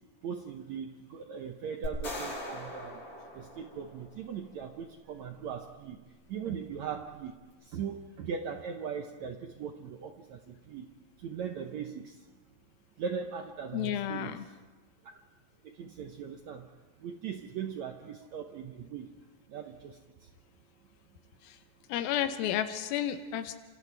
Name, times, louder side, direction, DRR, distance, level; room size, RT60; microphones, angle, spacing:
voice 1, 0.2-3.0 3.4-6.0 6.3-7.3 7.7-10.9 11.2-12.1 13.0-14.4 15.8-16.7 17.0-19.1 19.5-20.0, right 7 dB, 70° right, 5 dB, 1.7 m, -39 dB
sound 1, 1.8-4.2, left 1 dB, 40° left, 9.1 m, -40 dB
voice 2, 13.7-14.5 21.4-21.6 21.9-23.5, left 10 dB, 85° left, 8 dB, 2.8 m, -32 dB
28.5 x 27.0 x 3.4 m, 1.2 s
omnidirectional pair, 4.2 m